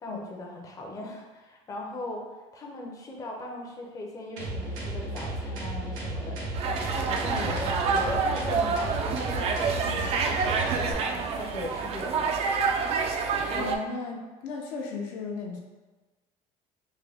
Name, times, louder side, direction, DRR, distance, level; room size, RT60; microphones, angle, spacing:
voice 1, 0.0-2.3 2.5-12.3, left 1 dB, 25° left, -1 dB, 0.5 m, -38 dB
sound 1, 4.4-10.9, right 1 dB, 85° right, 0.8 m, -34 dB
sound 2, 6.5-13.8, right 5 dB, 45° right, 0.4 m, -28 dB
voice 2, 13.5-15.6, left 4 dB, 75° left, 0 dB, 0.7 m, -35 dB
3.6 x 2.1 x 3.4 m, 1.2 s
cardioid pair, 120°, 14 cm